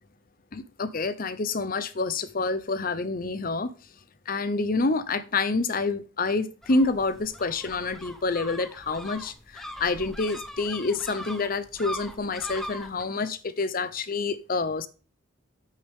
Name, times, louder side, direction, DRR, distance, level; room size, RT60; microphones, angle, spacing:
voice 1, 0.5-3.7 4.3-14.9, left 3 dB, 45° left, 0.8 m, -28 dB
sound 1, 6.6-13.0, equal, ahead, 1.0 m, -40 dB
9.3 x 8.4 x 3.6 m
head